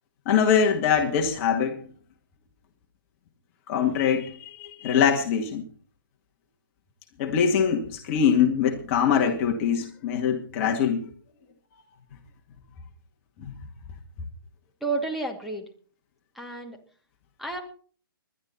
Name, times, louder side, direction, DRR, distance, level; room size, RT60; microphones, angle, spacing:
voice 1, 0.3-1.8 3.7-5.6 7.2-11.0 13.4-13.5, left 7 dB, 35° left, 2 dB, 2.1 m, -23 dB
voice 2, 14.8-15.7 16.3-16.8 17.4-17.6, right 3 dB, ahead, 1 dB, 2.5 m, -30 dB
21.0 x 11.5 x 4.2 m, 0.43 s
hypercardioid pair, 145°, 12 cm